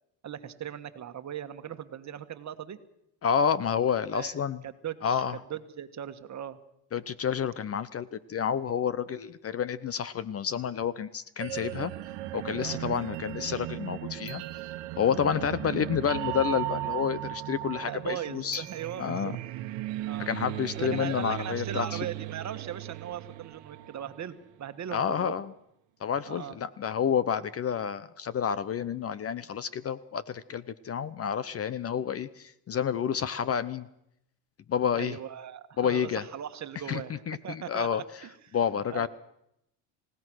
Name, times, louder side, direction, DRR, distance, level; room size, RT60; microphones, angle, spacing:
voice 1, 0.2-2.8 4.1-4.3 4.6-5.2 5.5-6.6 12.6-12.8 17.8-19.4 20.1-20.3 20.7-25.3 26.3-26.6 34.9-38.6 38.9-39.1, right 10 dB, 35° right, 10 dB, 1.6 m, -39 dB
voice 2, 3.2-4.6 5.0-5.4 6.9-11.9 12.3-14.4 15.0-18.6 19.0-19.3 20.2-22.0 24.9-25.5 26.0-33.9 34.7-35.2 35.8-36.2 36.9-38.0 38.5-39.1, left 8 dB, 30° left, 17 dB, 0.7 m, -29 dB
sound 1, 11.4-24.4, right 15 dB, 65° right, 1.4 m, -37 dB
29.5 x 17.0 x 6.3 m, 0.79 s
supercardioid pair, 110°, 45 cm